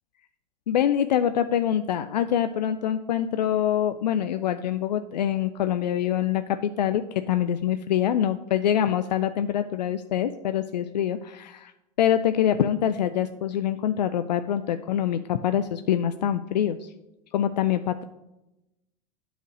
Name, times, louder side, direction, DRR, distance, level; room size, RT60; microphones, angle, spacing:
voice 1, 0.7-11.7 12.0-16.9 17.3-18.0, left 10 dB, 85° left, 10 dB, 0.5 m, -25 dB
8.8 x 5.0 x 6.3 m, 0.94 s
hypercardioid pair, 95°, 21 cm